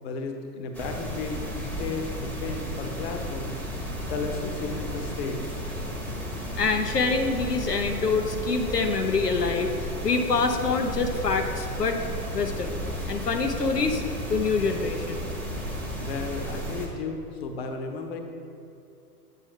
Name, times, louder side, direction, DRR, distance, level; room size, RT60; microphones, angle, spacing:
voice 1, 0.0-3.5 4.0-5.5 16.0-18.2, left 4 dB, 40° left, 5 dB, 0.9 m, -34 dB
sound 1, 0.7-16.9, equal, 5° left, 0.9 m, -33 dB
voice 2, 6.6-12.0 12.3-12.8 13.1-14.0 14.3-15.3, left 4 dB, 85° left, 5 dB, 0.8 m, -26 dB
8.2 x 7.0 x 3.5 m, 2.6 s
figure-of-eight pair, 110°, 46 cm